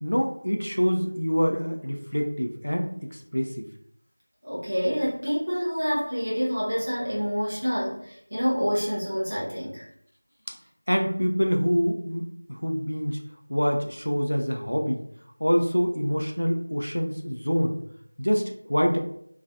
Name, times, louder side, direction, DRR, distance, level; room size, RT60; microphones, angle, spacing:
voice 1, 0.0-3.7 10.5-10.6 10.9-13.2 13.5-15.0 15.4-17.8 18.2-19.0, equal, 65° left, 2 dB, 0.4 m, -26 dB
voice 2, 4.4-9.8, equal, 15° right, -8 dB, 0.4 m, -27 dB
2.3 x 2.0 x 2.5 m, 0.68 s
figure-of-eight pair, 180°, 0 cm